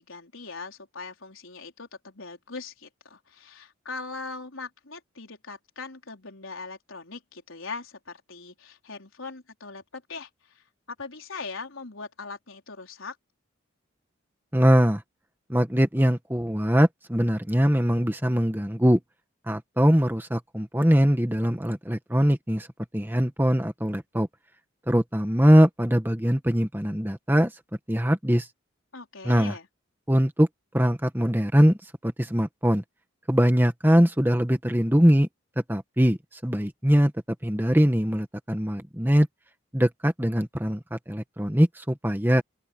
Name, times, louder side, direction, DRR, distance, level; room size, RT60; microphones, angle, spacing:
voice 1, 0.0-13.2 28.9-29.7, left 4 dB, 80° left, 4.4 m, -40 dB
voice 2, 14.5-15.0 15.5-19.0 19.5-22.7 22.9-24.3 24.9-27.5 27.9-28.5 29.2-29.5 30.1-30.5 30.7-32.8 33.3-35.3 35.7-36.2 36.4-37.1 37.4-39.3 39.7-42.4, equal, 10° right, 1.7 m, -22 dB
open air
head